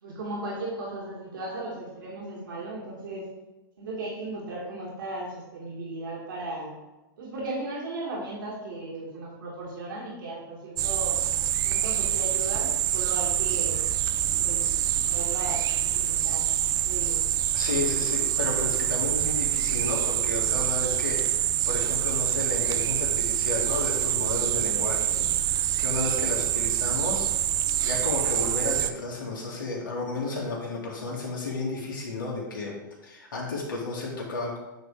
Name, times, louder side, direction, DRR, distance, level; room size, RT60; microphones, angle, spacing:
voice 1, 0.0-3.3 3.8-6.7 7.2-11.2 11.6-13.8 14.4-14.7 15.1-16.5 16.8-17.3, right 2 dB, 75° right, -4 dB, 2.5 m, -36 dB
sound 1, 10.8-28.9, right 12 dB, 30° right, 0.4 m, -26 dB
voice 2, 17.5-27.3 27.8-32.8 33.0-34.6, left 3 dB, 80° left, -3 dB, 2.1 m, -32 dB
9.2 x 3.5 x 4.9 m, 1.0 s
hypercardioid pair, 115°, 11 cm